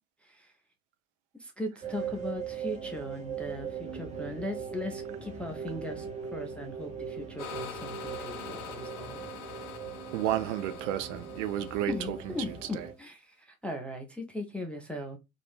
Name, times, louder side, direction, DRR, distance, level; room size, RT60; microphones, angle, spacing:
voice 1, 0.2-0.5 1.4-6.1 6.3-9.2 11.9-15.2, left 1 dB, 5° left, 0.4 m, -38 dB
sound 1, 1.8-12.9, right 6 dB, 15° right, 0.7 m, -40 dB
sound 2, 7.4-12.8, left 7 dB, 50° left, 0.8 m, -45 dB
voice 2, 10.1-12.9, right 12 dB, 60° right, 0.5 m, -32 dB
2.5 x 2.3 x 3.4 m
figure-of-eight pair, 70°, 42 cm